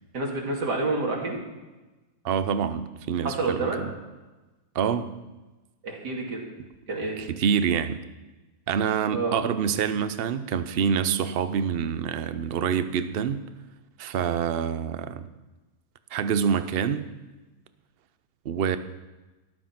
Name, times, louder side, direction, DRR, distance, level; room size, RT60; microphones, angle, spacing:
voice 1, 0.1-1.4 3.2-3.8 5.8-6.4 6.9-7.2 9.1-9.4, right 3 dB, 85° right, -1 dB, 3.2 m, -28 dB
voice 2, 2.2-3.9 4.7-5.1 7.2-8.0 8.7-13.5 14.0-15.3 16.1-17.1 18.4-18.8, right 7 dB, 50° right, 12 dB, 0.7 m, -26 dB
14.0 x 11.5 x 5.9 m, 1.1 s
omnidirectional pair, 1.7 m